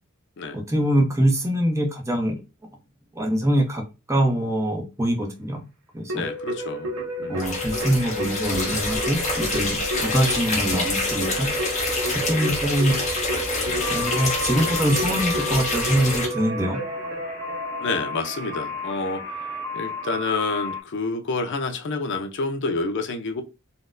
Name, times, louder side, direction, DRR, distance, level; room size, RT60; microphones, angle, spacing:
voice 1, 0.5-2.4 3.2-5.6 5.9-6.2 7.3-11.5 12.3-13.0 13.9-16.8, right 1 dB, 15° right, 0.7 m, -24 dB
voice 2, 6.1-6.9 7.2-7.4 17.8-19.2 19.7-23.4, left 3 dB, 60° left, 0.5 m, -28 dB
Keyboard (musical), 6.1-18.5, equal, 75° right, 0.8 m, -31 dB
sound 1, 7.4-16.2, left 2 dB, 35° left, 1.1 m, -27 dB
sound 2, 13.8-20.8, left 3 dB, 15° left, 1.0 m, -34 dB
4.0 x 2.1 x 2.5 m
head